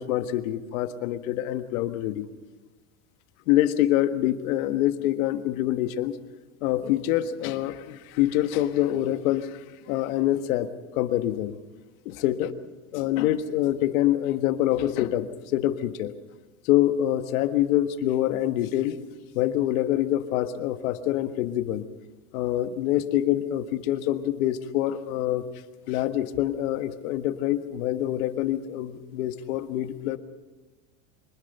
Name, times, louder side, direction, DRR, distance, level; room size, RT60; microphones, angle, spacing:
voice 1, 0.0-2.3 3.5-6.1 6.6-9.6 9.9-11.6 12.0-12.5 12.9-16.1 16.6-19.0 19.3-21.8 22.3-25.4 25.9-30.2, left 13 dB, 70° left, 9 dB, 1.6 m, -25 dB
25.0 x 20.0 x 5.6 m, 1.2 s
supercardioid pair, 165°, 44 cm